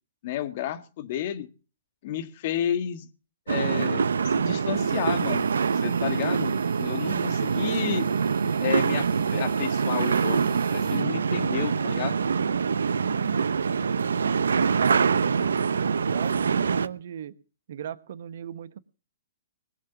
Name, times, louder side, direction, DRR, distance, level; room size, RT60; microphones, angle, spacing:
voice 1, 0.2-1.5 2.0-3.1 3.5-5.5 5.7-8.1 8.6-12.2, left 10 dB, 50° left, 10 dB, 1.8 m, -31 dB
sound 1, 3.5-16.9, right 6 dB, 80° right, 0.8 m, -25 dB
Harmonica, 4.7-11.1, right 8 dB, 25° right, 2.0 m, -47 dB
voice 2, 14.8-17.3 17.7-18.8, right 9 dB, 60° right, 13 dB, 1.2 m, -38 dB
20.5 x 7.2 x 7.0 m, 0.37 s
hypercardioid pair, 130°, 0 cm